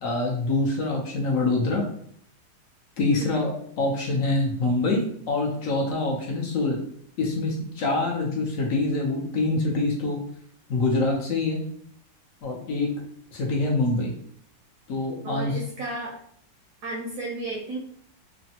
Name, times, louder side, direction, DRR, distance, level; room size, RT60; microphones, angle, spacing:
voice 1, 0.0-1.8 3.0-3.5 3.8-5.0 5.3-6.8 7.2-10.2 10.7-11.6 12.4-12.9 13.3-14.1 14.9-15.6, left 2 dB, 65° left, -1 dB, 0.8 m, -25 dB
voice 2, 3.1-3.5 15.2-16.2 16.8-17.8, right 2 dB, 70° right, -1 dB, 0.9 m, -33 dB
3.3 x 2.0 x 2.7 m, 0.65 s
omnidirectional pair, 2.0 m